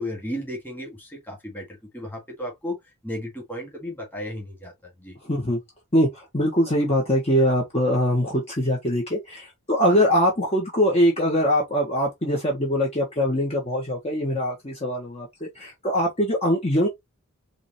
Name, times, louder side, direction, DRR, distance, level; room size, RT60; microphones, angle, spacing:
voice 1, 0.0-2.8 3.0-5.2, left 1 dB, 10° left, 2.0 m, -34 dB
voice 2, 5.2-5.6 5.9-16.9, equal, 30° left, 1.3 m, -22 dB
5.1 x 3.3 x 3.0 m
head